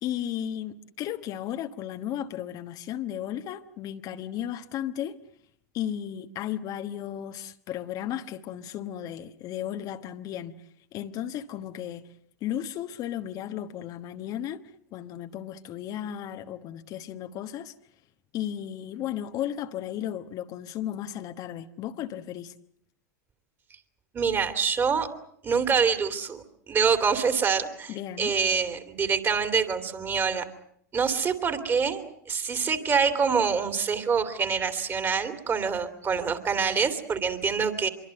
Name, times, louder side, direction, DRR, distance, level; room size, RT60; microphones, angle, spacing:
voice 1, 0.0-5.2 5.7-10.5 10.9-12.0 12.4-14.6 14.9-17.7 18.3-22.5 27.9-28.3, left 11 dB, 40° left, 1.2 m, -34 dB
voice 2, 24.1-25.1 25.4-30.5 30.9-37.9, right 6 dB, 25° right, 2.9 m, -26 dB
25.0 x 23.5 x 7.8 m
hypercardioid pair, 100°, 10 cm